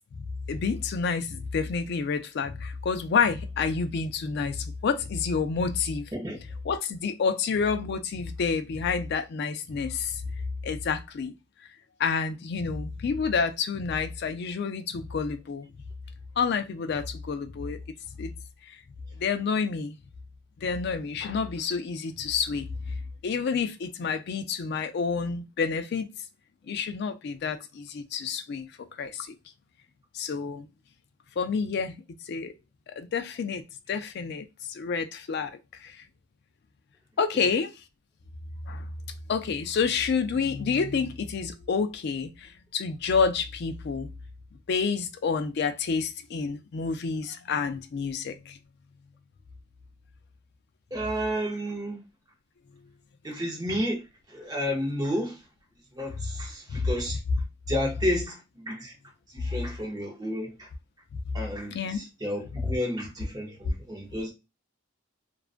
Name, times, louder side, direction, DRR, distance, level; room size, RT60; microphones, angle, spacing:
voice 1, 0.1-6.1 6.7-10.2 10.6-11.3 12.0-15.7 16.4-17.8 18.2-18.3 19.2-20.0 20.6-22.7 23.2-26.1 26.7-28.7 29.0-29.3 30.1-30.7 31.4-32.0 32.3-32.5 32.9-33.6 33.9-36.0 37.2-37.7 38.7-38.8 39.3-44.1 44.7-48.6 56.7-56.9 61.7-62.0, left 5 dB, 50° left, 0.3 m, -29 dB
voice 2, 50.9-52.0 53.2-55.5 55.9-57.2 57.7-58.9 59.3-60.7 61.3-64.3, equal, 15° right, 0.6 m, -31 dB
2.4 x 2.2 x 2.4 m
head